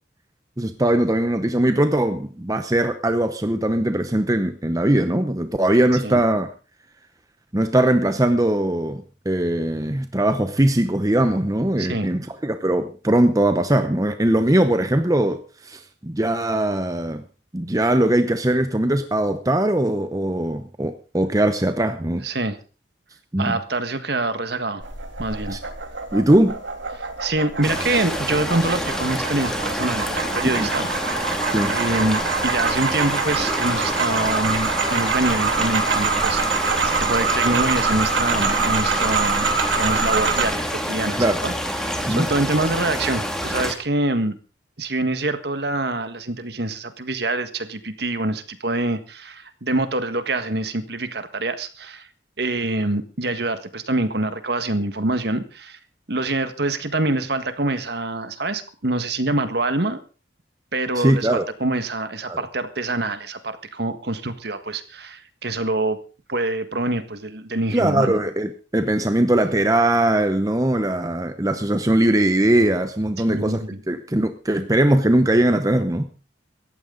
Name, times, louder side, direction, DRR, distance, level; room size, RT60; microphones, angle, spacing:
voice 1, 0.6-6.5 7.5-17.2 17.5-22.3 23.3-23.6 25.5-25.6 26.1-26.6 30.5-30.7 31.5-31.8 41.1-41.4 42.0-42.3 60.9-61.4 62.2-62.4 67.7-76.1, right 1 dB, 20° right, 0.8 m, -20 dB
voice 2, 11.8-12.1 22.2-22.6 23.4-24.8 25.2-25.6 27.0-31.3 31.7-44.4 44.8-52.1 52.4-55.8 56.1-60.0 60.7-66.0 66.3-68.2 73.3-73.8, right 2 dB, 55° right, 1.7 m, -25 dB
sound 1, 24.8-40.5, right 4 dB, 80° right, 3.1 m, -25 dB
sound 2, 27.6-43.7, equal, 5° left, 2.2 m, -28 dB
18.5 x 14.0 x 3.9 m
head